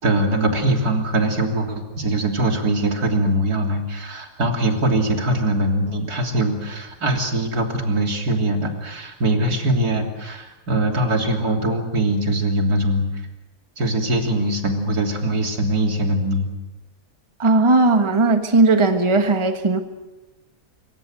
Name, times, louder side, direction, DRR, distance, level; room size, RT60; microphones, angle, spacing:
voice 1, 0.0-13.0 13.8-16.5, right 1 dB, 75° right, 3 dB, 3.7 m, -22 dB
voice 2, 17.4-19.8, right 3 dB, 20° right, 7 dB, 1.5 m, -17 dB
25.5 x 24.0 x 7.8 m, 1.1 s
omnidirectional pair, 1.6 m